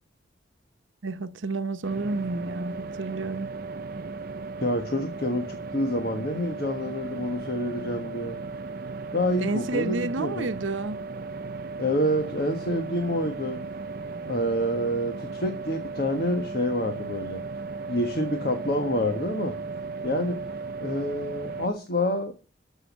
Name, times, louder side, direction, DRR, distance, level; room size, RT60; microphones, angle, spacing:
voice 1, 1.0-3.5 9.4-11.0, right 3 dB, 90° right, 0.9 m, -30 dB
sound 1, 1.8-21.7, right 4 dB, 50° right, 0.5 m, -36 dB
voice 2, 4.6-8.4 9.1-10.5 11.8-13.6 14.3-17.4 17.9-19.6 20.0-20.4 20.8-22.3, equal, 50° left, 1.5 m, -27 dB
13.5 x 6.2 x 7.3 m
head